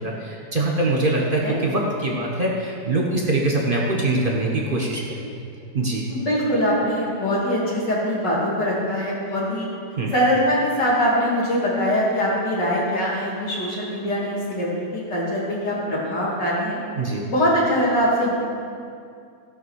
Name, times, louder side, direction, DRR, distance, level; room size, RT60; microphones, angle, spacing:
voice 1, 0.0-5.4 5.7-6.1 10.0-10.1 17.0-17.3, right 2 dB, 30° right, -2 dB, 1.4 m, -23 dB
voice 2, 1.2-1.6 6.1-9.7 10.1-16.8 17.2-18.3, equal, 80° left, -6 dB, 3.4 m, -22 dB
15.5 x 5.6 x 6.5 m, 2.4 s
omnidirectional pair, 1.8 m